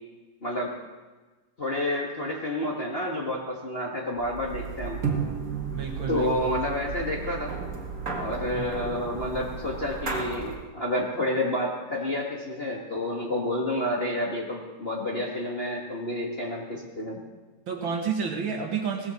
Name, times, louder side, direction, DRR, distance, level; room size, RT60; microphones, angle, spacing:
voice 1, 0.4-0.7 1.6-5.0 6.1-7.5 8.2-17.2, left 1 dB, 85° left, -3 dB, 0.5 m, -29 dB
sound 1, 4.2-10.7, right 5 dB, 35° right, 1.7 m, -33 dB
voice 2, 5.7-6.3 8.5-8.7 17.7-19.1, right 6 dB, 50° right, 2 dB, 1.7 m, -30 dB
18.0 x 14.5 x 4.2 m, 1.3 s
omnidirectional pair, 3.9 m